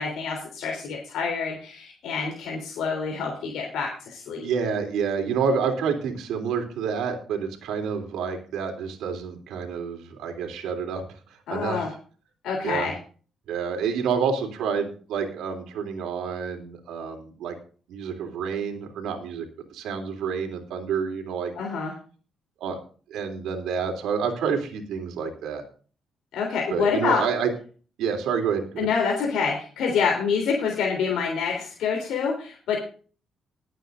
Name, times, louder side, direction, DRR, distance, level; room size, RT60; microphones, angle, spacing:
voice 1, 0.0-4.5 11.5-11.9 12.4-12.9 21.5-21.9 26.3-27.2 28.8-32.8, left 5 dB, 80° left, 0 dB, 3.5 m, -27 dB
voice 2, 4.4-11.0 11.5-11.9 12.6-12.9 13.5-17.5 17.9-21.5 22.6-22.8 23.1-25.6 26.7-27.5 28.0-28.9, right 6 dB, 85° right, 4 dB, 3.3 m, -28 dB
20.5 x 9.1 x 2.7 m, 0.39 s
cardioid pair, 90°, 0 cm